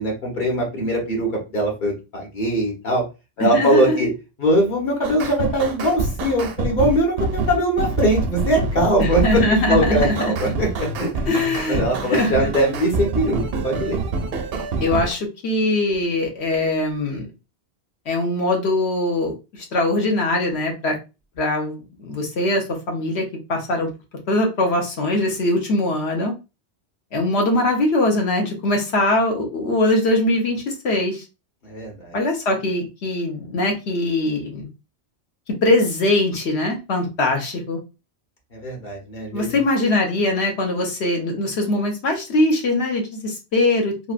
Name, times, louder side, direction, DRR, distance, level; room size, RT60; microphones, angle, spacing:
voice 1, 0.0-3.0 3.4-4.1 4.4-9.4 9.7-11.1 11.7-14.0 31.6-32.2 38.5-39.6, equal, 45° left, 0 dB, 1.2 m, -21 dB
voice 2, 3.4-4.1 9.0-10.6 11.3-12.5 14.8-17.3 18.1-21.0 21.4-23.9 24.3-26.3 27.1-31.2 32.1-34.7 35.6-37.8 39.3-44.1, left 2 dB, 70° left, 1 dB, 1.1 m, -22 dB
sound 1, 5.0-15.1, right 3 dB, 65° right, 0.8 m, -26 dB
3.2 x 2.4 x 2.4 m, 0.28 s
omnidirectional pair, 1.2 m